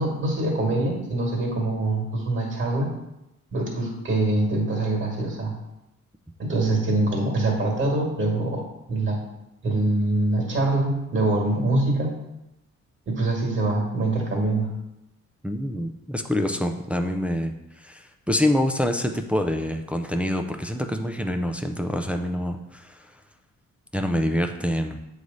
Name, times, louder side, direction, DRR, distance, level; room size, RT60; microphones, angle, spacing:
voice 1, 0.0-2.9 3.5-5.6 6.4-8.6 8.9-9.2 9.6-12.2 13.1-14.7, right 2 dB, 40° right, 0 dB, 1.8 m, -24 dB
voice 2, 15.4-23.0 23.9-25.0, left 1 dB, 5° right, 5 dB, 0.4 m, -26 dB
8.3 x 3.2 x 3.9 m, 0.90 s
cardioid pair, 115°, 29 cm